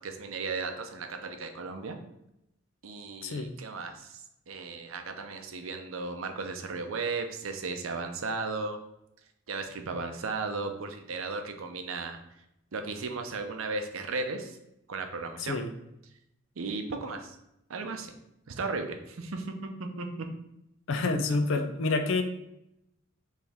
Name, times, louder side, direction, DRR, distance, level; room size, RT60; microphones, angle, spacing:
voice 1, 0.0-2.0 2.8-8.8 9.5-12.2 12.7-14.6 14.9-15.6 16.6-17.4 17.7-18.1 18.5-19.7 20.0-20.3, right 4 dB, 85° right, 6 dB, 0.6 m, -35 dB
voice 2, 15.4-15.7 20.9-22.2, left 3 dB, 70° left, 7 dB, 0.5 m, -28 dB
4.4 x 3.4 x 3.5 m, 0.83 s
head